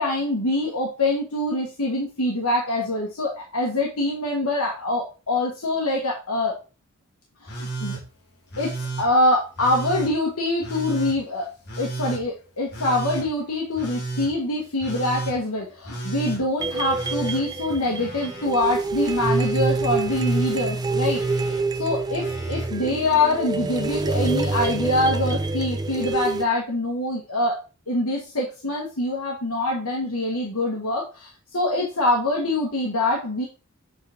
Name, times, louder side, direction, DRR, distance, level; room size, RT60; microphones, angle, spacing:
voice 1, 0.0-6.6 7.4-8.0 8.6-11.5 11.8-21.2 21.7-27.6 27.9-33.4, left 2 dB, 75° left, -2 dB, 1.6 m, -24 dB
Telephone, 7.5-8.0 8.5-9.1 9.6-10.1 10.6-11.2 11.7-12.2 12.7-13.3 13.8-14.3 14.8-15.4 15.8-16.4 16.9-18.5 18.7-19.5 20.1-20.6 21.1-21.6 22.2-22.7 23.9-24.0, right 3 dB, 50° left, 2.5 m, -33 dB
sound 1, 16.6-26.5, right 3 dB, 20° right, 0.4 m, -26 dB
7.7 x 4.1 x 3.6 m, 0.31 s
head